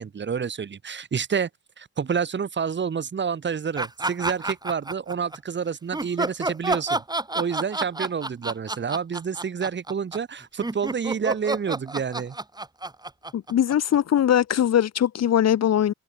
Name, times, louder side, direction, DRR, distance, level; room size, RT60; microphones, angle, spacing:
voice 1, 0.0-1.5 1.8-7.0 7.3-12.4, right 6 dB, 40° right, 1.8 m, -28 dB
sound 1, 3.8-5.4 5.9-14.2, right 2 dB, 15° right, 2.9 m, -29 dB
voice 2, 13.3-15.9, left 10 dB, 60° left, 1.8 m, -21 dB
open air
cardioid pair, 90°, 30 cm